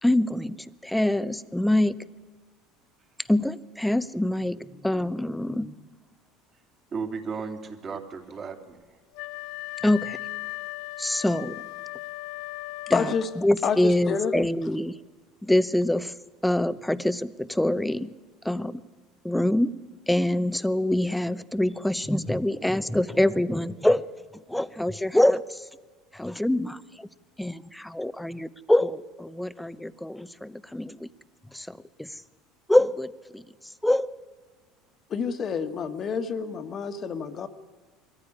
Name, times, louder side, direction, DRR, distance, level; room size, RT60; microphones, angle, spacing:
voice 1, 0.0-2.0 3.3-5.8 9.8-10.2 11.0-11.6 12.9-15.0 15.4-16.1 16.4-18.1 18.4-18.8 19.2-19.7 20.1-24.1 24.3-25.7 26.1-27.1 27.4-31.1 31.5-32.2 32.7-34.1, left 1 dB, 5° left, 15 dB, 0.8 m, -25 dB
voice 2, 6.9-9.0, right 5 dB, 35° right, 3 dB, 2.9 m, -35 dB
Wind instrument woodwind instrument, 9.1-13.6, left 21 dB, 70° left, 0.6 m, -37 dB
voice 3, 12.9-13.3 13.6-14.3 35.1-37.5, left 6 dB, 40° left, 9 dB, 1.5 m, -28 dB
22.0 x 14.5 x 9.9 m, 1.4 s
supercardioid pair, 100°, 0 cm